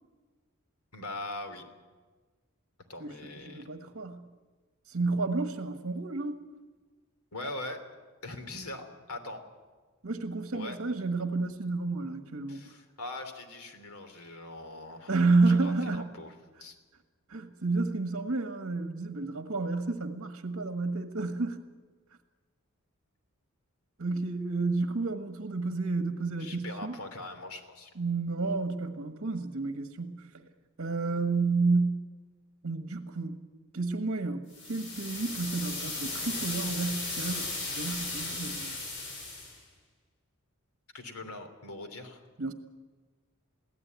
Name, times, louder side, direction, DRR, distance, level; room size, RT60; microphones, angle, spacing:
voice 1, 0.9-1.6 2.9-3.7 7.3-7.8 8.2-9.4 10.5-10.8 12.5-16.3 16.6-16.8 26.4-27.9 40.9-42.2, left 2 dB, 90° left, 7 dB, 3.0 m, -41 dB
voice 2, 3.5-4.2 4.9-6.4 10.0-12.7 15.1-16.1 17.3-21.7 24.0-27.0 27.9-30.2 30.8-32.0 32.6-33.4 33.7-38.8 42.4-42.5, right 3 dB, 60° right, 7 dB, 1.4 m, -30 dB
sound 1, 34.5-39.6, left 2 dB, 55° left, 7.4 m, -36 dB
22.5 x 16.0 x 9.4 m, 1.4 s
head